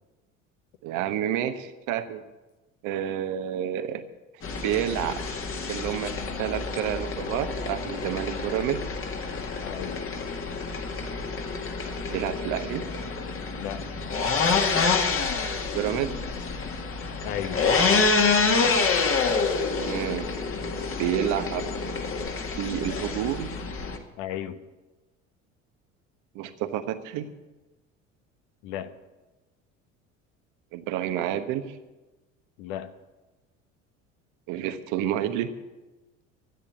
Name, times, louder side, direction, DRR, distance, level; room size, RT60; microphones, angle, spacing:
voice 1, 0.8-2.2 2.8-4.0 4.6-5.3 5.7-6.1 6.4-8.8 12.1-12.8 15.5-16.1 19.3-20.3 21.0-21.6 22.6-23.5 26.3-27.3 30.7-31.8 34.5-35.5, right 11 dB, 50° right, 9 dB, 1.2 m, -29 dB
sound 1, 4.4-24.0, left 4 dB, 35° left, 2.0 m, -27 dB
voice 2, 9.6-10.1 13.6-13.8 17.2-17.6 24.2-24.6 28.6-28.9 32.6-32.9, left 10 dB, 60° left, 10 dB, 1.1 m, -34 dB
13.0 x 10.0 x 8.1 m, 1.1 s
figure-of-eight pair, 65°, 38 cm